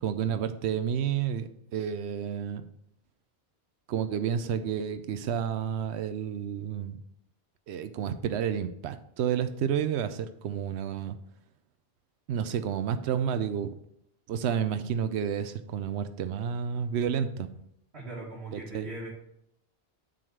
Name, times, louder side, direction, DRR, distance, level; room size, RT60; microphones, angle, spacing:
voice 1, 0.0-2.7 3.9-7.0 7.7-11.2 12.3-13.7 14.3-17.5 18.5-18.9, right 8 dB, 90° right, 10 dB, 0.8 m, -30 dB
voice 2, 17.9-19.1, right 1 dB, 70° right, -6 dB, 2.0 m, -39 dB
7.6 x 4.0 x 6.2 m, 0.76 s
omnidirectional pair, 1.1 m